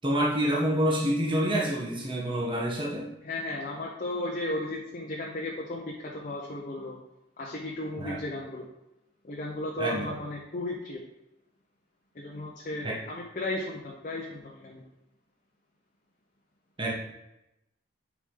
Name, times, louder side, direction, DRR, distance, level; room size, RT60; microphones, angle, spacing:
voice 1, 0.0-3.1 8.0-8.2 9.8-10.1 12.8-13.0 16.8-16.9, equal, 30° right, -4 dB, 1.2 m, -27 dB
voice 2, 3.2-7.0 7.4-8.6 9.2-11.0 12.1-14.8, left 2 dB, 45° left, -1 dB, 0.8 m, -35 dB
6.4 x 5.0 x 3.8 m, 0.89 s
head